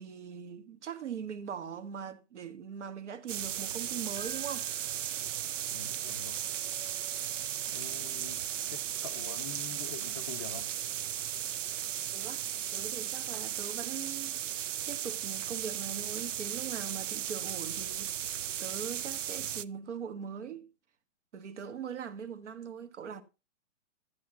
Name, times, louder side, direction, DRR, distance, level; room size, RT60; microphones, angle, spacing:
voice 1, 0.0-4.7 12.1-12.4 12.7-14.5 14.9-20.7 21.3-23.2, right 7 dB, 70° right, 1.5 m, -41 dB
sound 1, 3.3-19.6, right 10 dB, 85° right, 0.6 m, -36 dB
Keyboard (musical), 4.2-6.0, right 4 dB, 35° right, 1.1 m, -54 dB
voice 2, 5.7-6.4 7.7-8.4 9.0-10.7, left 7 dB, 20° left, 0.4 m, -45 dB
12.5 x 9.4 x 2.8 m
hypercardioid pair, 155°, 37 cm